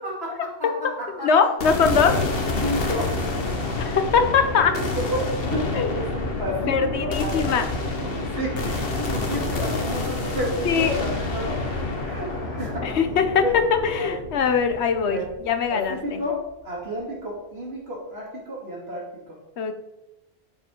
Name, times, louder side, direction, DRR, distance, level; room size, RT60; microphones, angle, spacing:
voice 1, 0.0-1.5 2.1-2.2 2.6-3.3 4.6-7.4 7.8-11.6 12.0-13.5 13.9-14.2 15.1-15.3 15.7-19.4, equal, 70° right, -4 dB, 2.8 m, -31 dB
voice 2, 1.2-2.1 3.8-4.7 5.7-5.9 6.7-7.7 10.6-11.0 12.8-13.4 13.8-15.2 15.5-16.0 19.6-19.7, left 6 dB, 85° left, 8 dB, 1.1 m, -21 dB
sound 1, 1.6-15.9, left 2 dB, 60° left, 1.4 m, -28 dB
11.0 x 5.0 x 3.7 m, 0.96 s
omnidirectional pair, 1.1 m